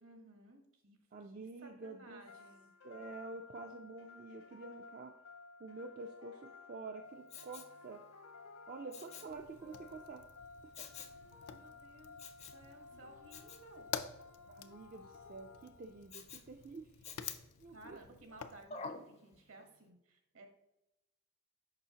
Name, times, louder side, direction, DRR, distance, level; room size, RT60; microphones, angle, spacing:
voice 1, 0.0-1.0 1.3-2.7 9.2-9.8 11.5-12.2 12.5-13.9 17.7-20.5, right 2 dB, 65° right, 4 dB, 1.2 m, -58 dB
voice 2, 1.1-2.2 2.8-5.1 5.6-8.0 8.7-10.2 10.6-10.7 12.9-13.0 14.5-17.1 17.6-18.0, right 3 dB, 40° right, 4 dB, 0.3 m, -48 dB
sound 1, 2.3-16.1, left 4 dB, 70° left, 0.9 m, -56 dB
Respiratory sounds, 7.3-7.8 8.9-9.4 10.7-11.2 12.2-12.6 13.3-13.7 16.1-16.5 17.0-17.6 18.7-19.1 19.6-19.7, left 5 dB, 30° left, 0.4 m, -48 dB
Fire, 9.3-18.6, left 8 dB, 85° left, 0.5 m, -49 dB
6.7 x 5.5 x 2.8 m, 0.88 s
head